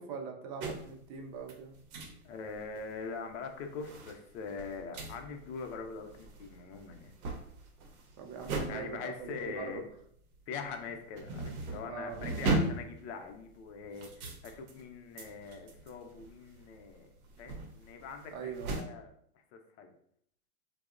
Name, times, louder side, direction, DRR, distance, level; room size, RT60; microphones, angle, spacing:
voice 1, 0.0-1.7 8.2-9.8 11.9-12.4 18.3-18.8, right 5 dB, 40° right, 4 dB, 0.5 m, -42 dB
sound 1, 0.6-1.0 1.4-2.2 2.5-3.0 3.4-10.4 10.6-18.8, right 2 dB, 85° right, 0.7 m, -38 dB
voice 2, 2.2-7.1 8.7-9.9 10.5-17.1 17.4-19.1 19.5-19.9, left 5 dB, 50° left, 4 dB, 0.5 m, -43 dB
2.7 x 2.0 x 2.4 m, 0.67 s
hypercardioid pair, 120°, 42 cm